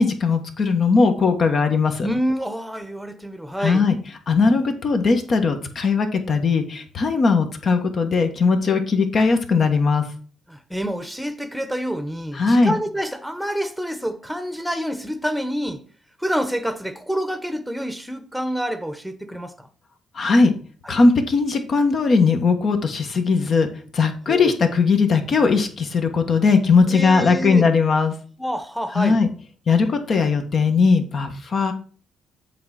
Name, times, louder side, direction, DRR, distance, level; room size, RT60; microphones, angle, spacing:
voice 1, 0.0-2.1 3.6-3.9 4.3-10.0 12.3-12.8 20.1-20.5 20.9-23.7 23.9-28.1 28.9-29.3 29.7-31.7, left 4 dB, 50° left, 1.3 m, -19 dB
voice 2, 2.0-3.9 10.5-15.8 16.2-19.7 24.3-24.5 26.9-27.7 28.4-29.2, equal, ahead, 1.0 m, -27 dB
7.6 x 3.6 x 5.8 m
cardioid pair, 90°, 0 cm